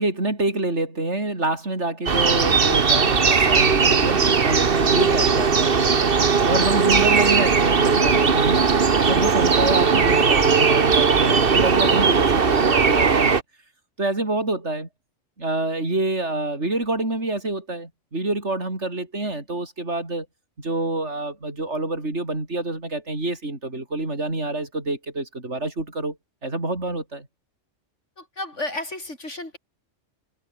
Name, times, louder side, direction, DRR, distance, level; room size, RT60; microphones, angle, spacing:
voice 1, 0.0-6.0 6.5-13.4 14.0-14.9 15.4-20.3 20.6-26.2 26.4-27.3, right 2 dB, 70° right, 5.6 m, -27 dB
sound 1, 2.1-13.4, right 5 dB, 50° right, 1.6 m, -18 dB
voice 2, 28.2-29.6, left 2 dB, 80° left, 6.7 m, -32 dB
omnidirectional pair, 1.2 m